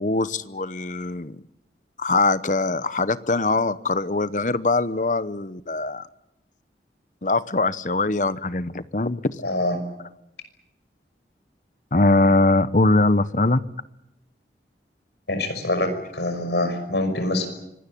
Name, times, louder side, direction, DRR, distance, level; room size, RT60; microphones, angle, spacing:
voice 1, 0.0-1.4 2.0-6.1 7.2-9.4 11.9-13.6, left 2 dB, 45° left, 15 dB, 0.9 m, -22 dB
voice 2, 9.4-9.8 15.3-17.5, left 1 dB, 75° left, 7 dB, 5.9 m, -25 dB
24.5 x 19.0 x 10.0 m, 0.87 s
head